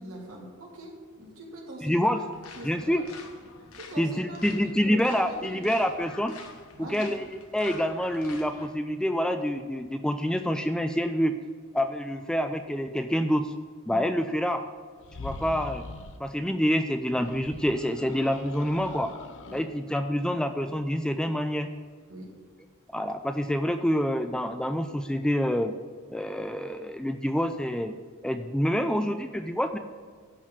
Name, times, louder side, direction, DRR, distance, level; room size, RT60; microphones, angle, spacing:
voice 1, 0.0-2.2 2.5-3.0 3.7-5.0 5.3-5.6 6.7-7.1 13.9-14.1 19.5-19.6 22.1-22.3, right 1 dB, 70° right, -2 dB, 2.3 m, -42 dB
voice 2, 1.8-2.2 2.6-3.0 4.0-6.4 6.8-11.4 11.7-13.5 13.9-14.6 15.2-15.8 16.2-19.1 19.5-21.7 22.9-25.7 26.1-27.9 28.2-29.8, equal, 5° left, 8 dB, 0.3 m, -27 dB
sound 1, 2.3-8.7, left 4 dB, 80° left, 1.1 m, -47 dB
sound 2, 15.0-16.2 17.1-19.7, left 3 dB, 65° left, 0.6 m, -42 dB
11.0 x 4.1 x 7.3 m, 1.5 s
head